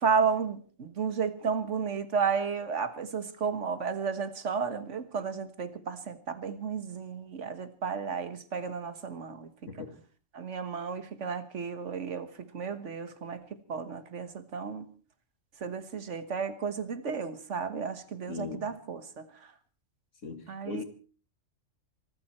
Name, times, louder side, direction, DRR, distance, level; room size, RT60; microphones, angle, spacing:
voice 1, 0.0-9.5 10.3-13.4 13.7-14.8 15.6-19.5 20.5-20.8, right 6 dB, 65° right, 1.7 m, -33 dB
voice 2, 18.3-18.7 20.2-20.8, left 5 dB, 75° left, 2.4 m, -38 dB
24.5 x 13.5 x 4.4 m
omnidirectional pair, 1.3 m